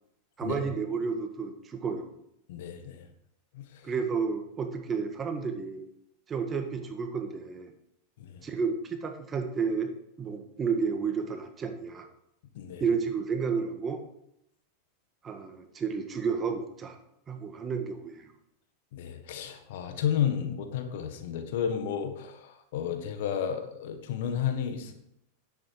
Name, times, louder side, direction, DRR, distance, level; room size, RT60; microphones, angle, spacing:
voice 1, 0.4-2.1 3.8-5.8 6.3-7.7 8.4-9.9 10.2-12.1 12.8-14.0 15.2-17.0 17.3-18.3, right 5 dB, 25° right, 6 dB, 1.6 m, -31 dB
voice 2, 2.5-3.1 3.5-3.9 8.2-8.4 12.5-12.8 18.9-24.9, left 8 dB, 70° left, 7 dB, 1.6 m, -32 dB
9.9 x 8.3 x 4.8 m, 0.77 s
hypercardioid pair, 105°, 0 cm